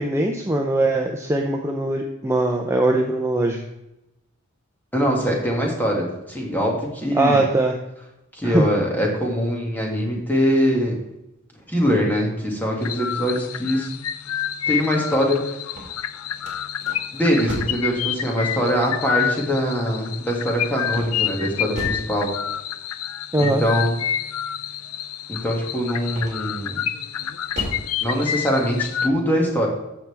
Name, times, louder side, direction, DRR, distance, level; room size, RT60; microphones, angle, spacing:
voice 1, 0.0-3.6 7.1-7.8 8.4-8.7 23.3-23.6, right 2 dB, 10° right, 2 dB, 0.6 m, -21 dB
voice 2, 4.9-7.4 8.3-11.0 11.7-13.9 14.7-15.6 15.9-16.0 17.1-22.3 23.4-23.9 25.3-26.8 28.0-29.7, equal, 10° left, -1 dB, 2.2 m, -22 dB
sound 1, 12.8-29.1, left 9 dB, 75° left, 0.5 m, -28 dB
sound 2, 15.6-17.9 20.9-22.2 26.1-26.6 27.1-27.9, right 1 dB, 35° right, 2.7 m, -35 dB
14.5 x 5.9 x 3.5 m, 0.90 s
head